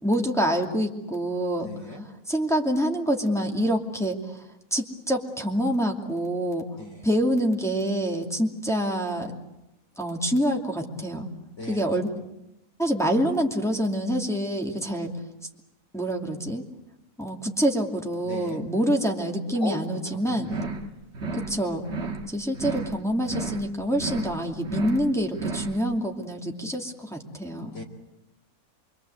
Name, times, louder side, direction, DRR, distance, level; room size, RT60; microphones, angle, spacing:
voice 1, 0.0-1.7 2.3-4.5 4.7-6.7 7.0-9.3 10.0-11.3 11.7-12.1 12.8-15.1 15.9-16.6 17.2-20.5 21.3-21.8 22.3-27.7, equal, ahead, 0 dB, 2.5 m, -26 dB
voice 2, 1.6-2.0 6.8-7.1 11.6-12.0 18.2-18.6 19.6-20.7 27.7-27.8, left 2 dB, 50° left, 2 dB, 3.8 m, -37 dB
sound 1, 20.4-20.9 21.1-21.6 21.8-22.3 22.5-23.0 23.2-23.7 23.9-24.4 24.6-25.1 25.3-25.8, right 3 dB, 45° right, 1.8 m, -32 dB
28.0 x 23.0 x 7.9 m, 0.91 s
omnidirectional pair, 1.6 m